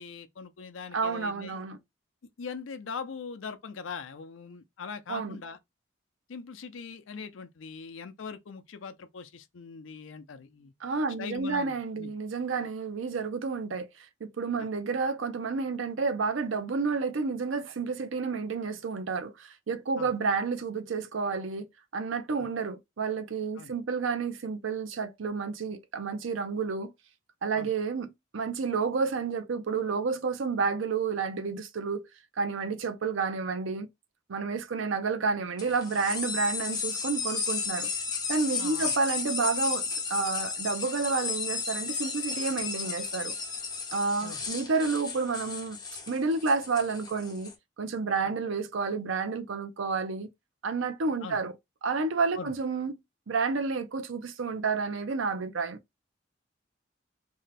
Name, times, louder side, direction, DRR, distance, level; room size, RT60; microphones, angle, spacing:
voice 1, 0.0-1.6 2.4-5.6 6.3-10.7 11.2-12.1 14.6-14.7 20.0-20.1 23.6-23.7 27.5-27.7 38.6-38.9 44.2-44.5 51.2-51.4 52.4-52.5, left 5 dB, 80° left, 0.5 m, -41 dB
voice 2, 0.9-1.8 5.1-5.4 10.8-13.9 14.4-21.7 21.9-26.9 27.4-32.1 32.4-33.9 34.3-37.9 38.3-43.3 43.9-45.8 46.1-47.5 47.8-50.3 50.6-51.5 51.8-53.0 53.3-55.8, right 4 dB, 85° right, 0.6 m, -30 dB
sound 1, 35.6-47.5, left 5 dB, 20° left, 1.0 m, -34 dB
2.8 x 2.1 x 4.0 m
head